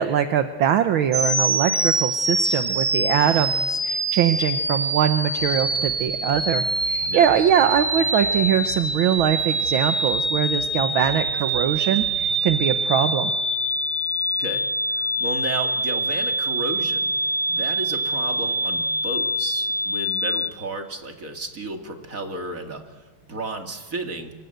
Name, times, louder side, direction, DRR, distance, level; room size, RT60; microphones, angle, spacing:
voice 1, 0.0-13.3, right 9 dB, 70° right, 9 dB, 1.7 m, -22 dB
sound 1, 1.1-20.5, right 1 dB, 15° right, 1.4 m, -25 dB
sound 2, 5.3-12.9, left 2 dB, 50° left, 4.3 m, -42 dB
voice 2, 14.4-17.2 17.5-24.3, right 2 dB, 35° right, 4 dB, 2.8 m, -33 dB
26.5 x 25.5 x 8.0 m, 1.3 s
omnidirectional pair, 2.4 m